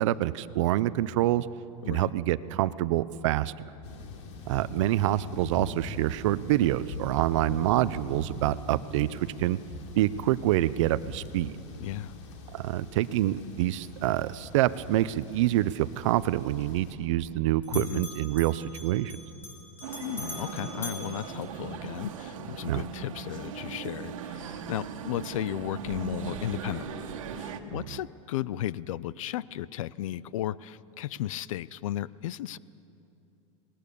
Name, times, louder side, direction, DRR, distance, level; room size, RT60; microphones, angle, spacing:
voice 1, 0.0-1.5 1.9-3.5 4.5-9.6 10.0-11.6 12.5-19.2 22.7-22.8 27.7-28.0, right 14 dB, 70° right, 16 dB, 0.7 m, -26 dB
voice 2, 1.8-2.1 11.8-12.1 17.7-18.1 20.0-32.6, left 13 dB, 90° left, 20 dB, 0.6 m, -35 dB
sound 1, 3.8-16.9, left 3 dB, 70° left, 3.4 m, -43 dB
Bell, 17.2-17.4 17.6-22.1, left 2 dB, 15° left, 3.8 m, -44 dB
sound 2, 19.8-27.6, right 7 dB, 85° right, 1.7 m, -38 dB
27.0 x 19.5 x 6.9 m, 2.8 s
supercardioid pair, 155°, 17 cm